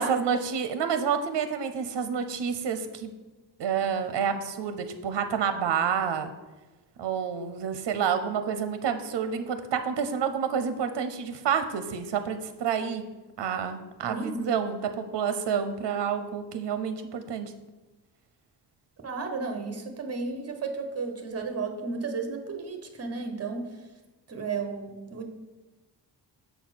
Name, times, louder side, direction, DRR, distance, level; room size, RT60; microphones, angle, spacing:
voice 1, 0.0-3.1 3.6-6.3 7.0-13.0 13.4-17.5, right 7 dB, 75° right, 9 dB, 0.6 m, -29 dB
voice 2, 14.1-14.4 19.0-23.8 24.3-25.3, right 4 dB, 35° right, 5 dB, 0.9 m, -33 dB
6.7 x 4.2 x 6.0 m, 1.2 s
wide cardioid pair, 150°, 43 cm